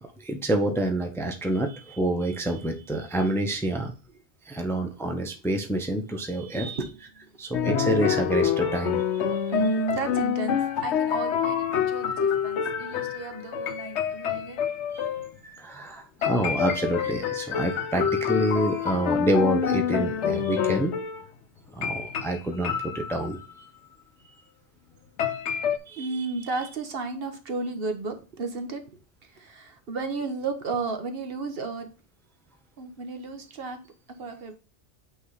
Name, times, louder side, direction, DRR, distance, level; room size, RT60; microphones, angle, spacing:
voice 1, 0.0-3.9 4.4-6.8 7.4-9.0 9.3-9.4 14.9-15.1 15.4-20.9 21.7-23.4 25.9-26.3, right 1 dB, 5° left, 4 dB, 0.7 m, -27 dB
voice 2, 6.5-7.6 9.5-14.6 26.0-31.9 32.8-33.8 34.2-34.5, right 3 dB, 55° right, 6 dB, 1.2 m, -33 dB
sound 1, 7.5-15.3 16.2-21.3 21.8-23.5 25.2-25.8, left 8 dB, 80° left, 1.0 m, -27 dB
8.5 x 3.3 x 4.0 m, 0.33 s
omnidirectional pair, 1.2 m